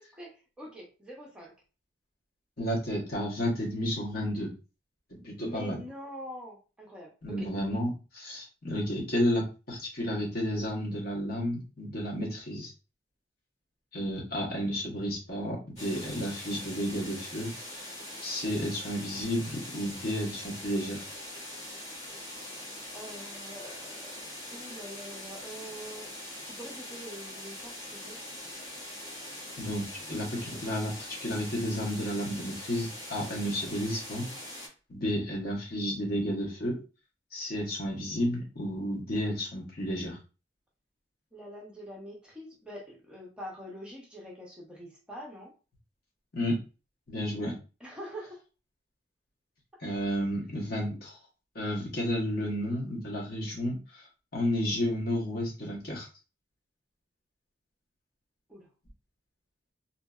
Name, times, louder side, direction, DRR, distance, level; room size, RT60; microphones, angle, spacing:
voice 1, 0.0-1.5 5.4-7.5 22.9-26.1 26.4-28.2 33.2-33.4 41.3-45.5 47.8-48.4 49.7-49.8 58.5-58.7, equal, 5° right, -3 dB, 0.7 m, -45 dB
voice 2, 2.6-4.5 5.1-5.8 7.2-12.7 13.9-17.9 18.2-21.0 29.6-34.3 34.9-36.8 37.3-40.2 46.3-46.6 47.1-47.5 49.8-51.2 51.5-56.1, equal, 55° left, -3 dB, 1.1 m, -32 dB
sound 1, 15.8-34.7, left 1 dB, 35° left, 1.5 m, -42 dB
2.7 x 2.5 x 2.3 m, 0.33 s
head